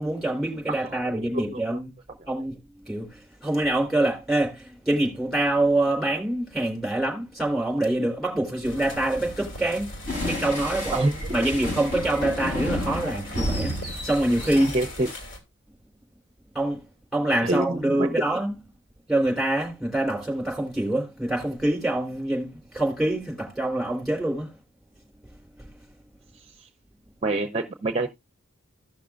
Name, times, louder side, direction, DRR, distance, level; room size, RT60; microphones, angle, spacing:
voice 1, 0.0-1.9 2.3-2.6 2.9-9.9 10.3-14.7 16.5-16.8 17.1-18.5 19.1-24.5 25.6-25.8, right 1 dB, ahead, 3.6 m, -25 dB
voice 2, 0.8-1.8 10.9-11.3 14.5-15.1 17.4-18.1 26.3-26.7 27.2-28.1, right 2 dB, 30° right, 0.6 m, -27 dB
sound 1, 8.6-15.4, equal, 75° left, 2.7 m, -39 dB
sound 2, 10.1-15.2, left 1 dB, 60° left, 7.1 m, -31 dB
16.0 x 5.9 x 2.4 m
head